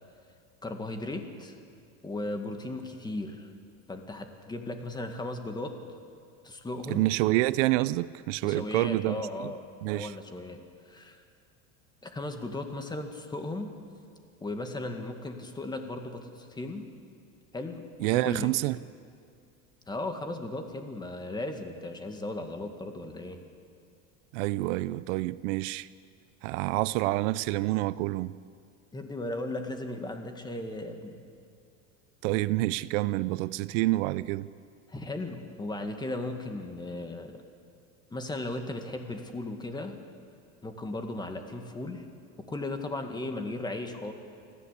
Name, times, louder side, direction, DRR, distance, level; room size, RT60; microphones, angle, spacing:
voice 1, 0.6-1.6 2.0-3.5 3.9-5.8 6.4-7.0 8.4-9.6 9.9-10.6 10.9-11.2 12.0-13.7 14.4-16.9 17.5-18.5 19.9-23.4 28.9-31.3 34.9-37.4 38.1-40.0 40.6-42.1 42.5-44.1, left 2 dB, 10° left, 2.0 m, -36 dB
voice 2, 6.9-9.2 9.8-10.1 18.0-18.8 24.3-25.9 26.4-28.3 32.2-34.5, right 18 dB, 75° right, 0.6 m, -27 dB
25.0 x 15.5 x 8.5 m
supercardioid pair, 140°, 37 cm